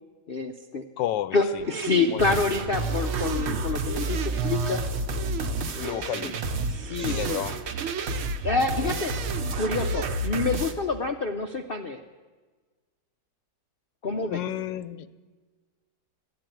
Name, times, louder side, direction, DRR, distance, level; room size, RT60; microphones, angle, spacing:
voice 1, 0.3-0.8 1.3-4.8 5.7-6.0 6.2-6.4 6.7-7.2 8.4-9.1 9.6-12.0 14.0-14.4, left 4 dB, 70° left, 5 dB, 0.5 m, -27 dB
voice 2, 1.0-1.7 2.1-2.4 5.8-6.3 7.0-7.6 14.3-15.1, left 12 dB, 90° left, 16 dB, 1.3 m, -31 dB
sound 1, 1.6-10.1, right 9 dB, 80° right, 0.6 m, -36 dB
sound 2, 2.2-10.7, right 2 dB, 50° right, 0.9 m, -30 dB
14.0 x 9.6 x 9.1 m, 1.4 s
omnidirectional pair, 1.9 m